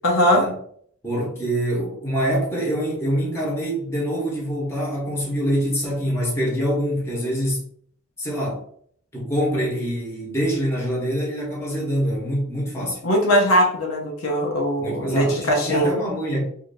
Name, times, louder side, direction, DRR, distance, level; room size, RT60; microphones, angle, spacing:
voice 1, 0.0-0.4 13.0-15.9, equal, 70° left, 0 dB, 0.8 m, -20 dB
voice 2, 1.0-7.7 8.2-8.6 9.1-13.0 14.8-16.5, equal, 10° left, -4 dB, 1.1 m, -25 dB
2.8 x 2.6 x 4.0 m, 0.62 s
head